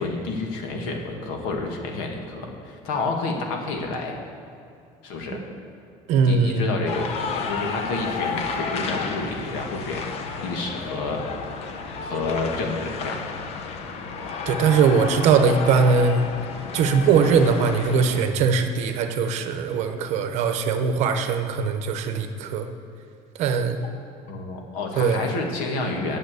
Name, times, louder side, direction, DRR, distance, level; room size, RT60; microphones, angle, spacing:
voice 1, 0.0-4.2 5.0-5.4 6.2-11.2 12.0-13.2 24.3-26.2, left 3 dB, 85° left, 2 dB, 1.9 m, -29 dB
voice 2, 6.1-6.7 14.5-16.3 16.7-22.7 23.4-23.8 25.0-25.3, right 5 dB, 55° right, 7 dB, 0.9 m, -21 dB
sound 1, 6.9-18.3, left 5 dB, 50° left, 0.9 m, -32 dB
9.2 x 7.2 x 8.2 m, 2.5 s
cardioid pair, 165°, 14 cm